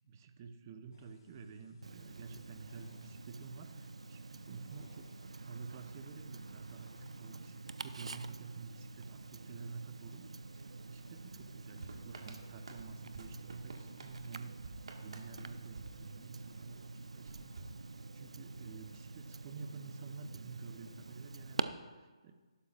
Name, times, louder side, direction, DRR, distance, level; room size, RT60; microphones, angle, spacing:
voice 1, 0.1-10.3 10.5-22.3, right 5 dB, 30° right, 7 dB, 1.0 m, -51 dB
sound 1, 0.9-17.7, left 2 dB, 50° left, 4.2 m, -69 dB
Tick-tock, 1.8-21.6, right 3 dB, 90° right, 0.7 m, -47 dB
sound 2, 11.8-16.7 17.2-18.5, right 3 dB, 70° right, 1.9 m, -52 dB
18.0 x 11.5 x 2.6 m, 1.3 s
hypercardioid pair, 160°, 3 cm